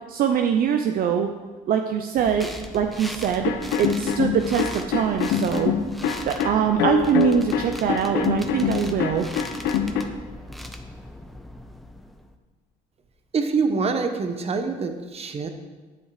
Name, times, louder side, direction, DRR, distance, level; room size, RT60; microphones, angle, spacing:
voice 1, 0.1-1.3 1.7-5.7 6.2-9.3, right 8 dB, 60° right, 6 dB, 0.7 m, -23 dB
sound 1, 2.2-12.4, left 1 dB, ahead, 0.8 m, -39 dB
sound 2, 3.4-10.0, left 8 dB, 85° left, 1.0 m, -25 dB
voice 2, 13.3-15.5, right 4 dB, 35° right, 7 dB, 1.1 m, -25 dB
11.0 x 7.3 x 5.0 m, 1.3 s
cardioid pair, 110°, 17 cm